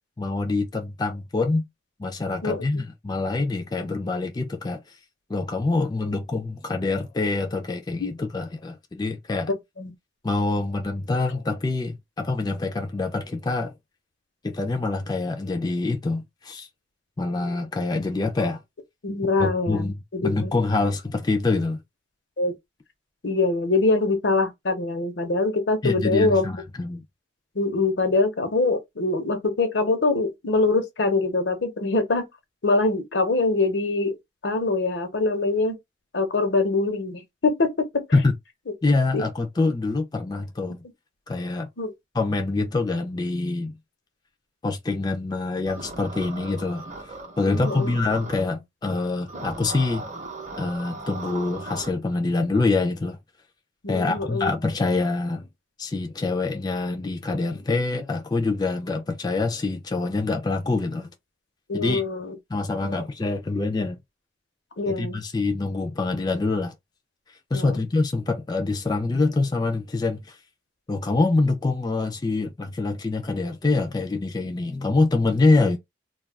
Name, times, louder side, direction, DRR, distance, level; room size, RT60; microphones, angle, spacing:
voice 1, 0.2-1.7 2.0-5.0 5.3-9.5 10.2-13.8 14.4-16.7 17.2-18.6 19.4-21.8 25.8-27.1 38.1-38.4 38.8-40.8 41.3-41.7 42.1-43.8 44.6-50.1 50.6-53.2 53.9-55.5 55.8-61.1 61.7-62.0 62.5-64.0 64.9-66.7 67.3-70.4 70.9-75.8, left 3 dB, 20° left, 0.3 m, -25 dB
voice 2, 19.0-19.9 20.1-20.5 22.4-22.5 23.2-26.4 27.5-32.2 32.6-34.2 34.4-35.8 36.1-38.1 39.1-39.3 41.8-41.9 47.4-47.9 53.8-54.5 61.7-62.3 62.8-63.0 64.8-65.2 67.5-67.8, left 3 dB, 75° left, 0.8 m, -24 dB
sound 1, 45.7-48.4 49.3-51.9, right 2 dB, 40° right, 0.6 m, -37 dB
2.3 x 2.2 x 3.4 m
head